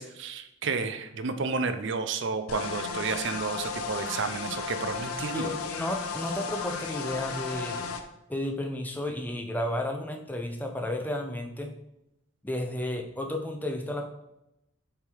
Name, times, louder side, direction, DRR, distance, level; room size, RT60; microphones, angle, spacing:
voice 1, 0.0-5.5, right 4 dB, 55° right, 9 dB, 0.5 m, -31 dB
sound 1, 2.5-8.0, left 5 dB, 85° left, 0.7 m, -34 dB
voice 2, 5.3-8.0 8.3-11.8 12.4-14.1, left 1 dB, 10° left, 3 dB, 0.5 m, -32 dB
6.9 x 3.4 x 4.5 m, 0.86 s
head